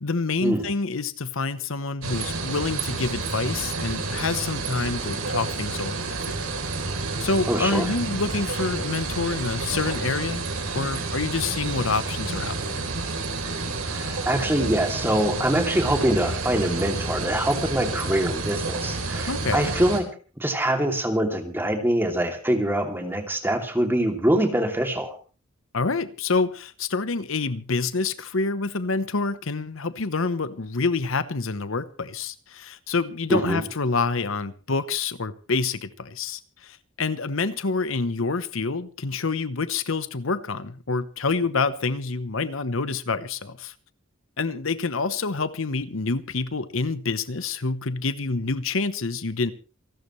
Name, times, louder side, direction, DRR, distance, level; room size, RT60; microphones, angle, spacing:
voice 1, 0.0-6.4 7.2-10.4 10.7-12.9 19.2-19.7 25.7-43.7 44.4-49.5, left 4 dB, 65° left, 13 dB, 1.0 m, -27 dB
Small lake at night, 2.0-20.0, right 3 dB, 85° right, 3.7 m, -30 dB
voice 2, 7.5-7.9 13.9-20.1 20.4-25.2 33.3-33.6, right 1 dB, 10° right, 4 dB, 2.8 m, -24 dB
28.0 x 12.5 x 3.2 m, 0.36 s
head